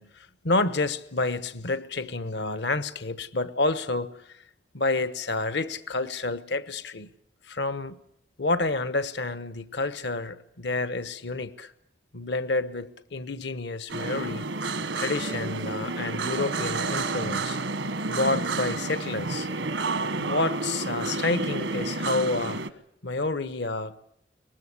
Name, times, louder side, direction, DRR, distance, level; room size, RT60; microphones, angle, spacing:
voice 1, 0.0-4.4 4.7-7.1 7.4-8.0 8.4-11.7 12.1-17.6 18.1-19.5 20.2-22.6 23.0-23.9, left 3 dB, 70° left, 1.1 m, -29 dB
sound 1, 13.9-22.7, right 3 dB, 80° right, 1.3 m, -30 dB
23.5 x 20.0 x 8.3 m
head